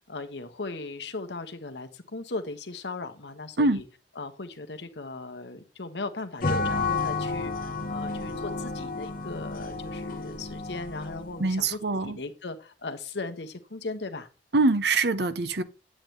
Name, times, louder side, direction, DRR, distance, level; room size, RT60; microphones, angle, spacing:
voice 1, 0.1-3.8 4.2-7.5 7.9-14.3, left 3 dB, 75° left, 1.2 m, -37 dB
sound 1, 6.4-11.5, left 3 dB, 50° left, 1.2 m, -31 dB
voice 2, 11.4-12.2 14.5-15.6, right 3 dB, 70° right, 0.9 m, -24 dB
9.4 x 8.7 x 3.3 m
head